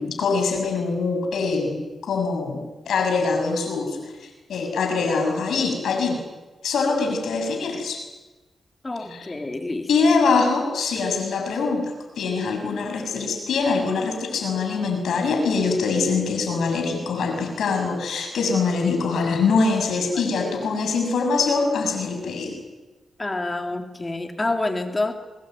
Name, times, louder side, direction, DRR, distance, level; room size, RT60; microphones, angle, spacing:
voice 1, 0.0-6.2 6.6-8.0 9.1-9.3 9.9-22.5, left 4 dB, 85° left, 4 dB, 7.1 m, -23 dB
voice 2, 8.8-9.9 20.1-20.3 23.2-25.1, left 2 dB, 30° left, 5 dB, 3.8 m, -27 dB
25.0 x 20.5 x 9.4 m, 1.2 s
cardioid pair, 60°, 0 cm